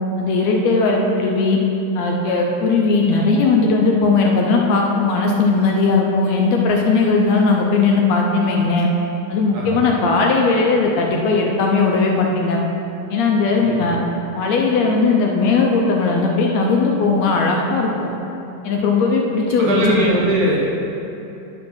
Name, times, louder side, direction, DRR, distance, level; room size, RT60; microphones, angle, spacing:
voice 1, 0.2-1.6 1.9-8.9 9.3-12.6 13.1-14.0 14.3-18.1 18.6-20.1, left 4 dB, 75° left, 0 dB, 1.6 m, -18 dB
voice 2, 13.6-14.0 19.6-20.6, right 1 dB, 70° right, -4 dB, 0.9 m, -20 dB
10.5 x 3.7 x 6.0 m, 2.8 s
omnidirectional pair, 3.7 m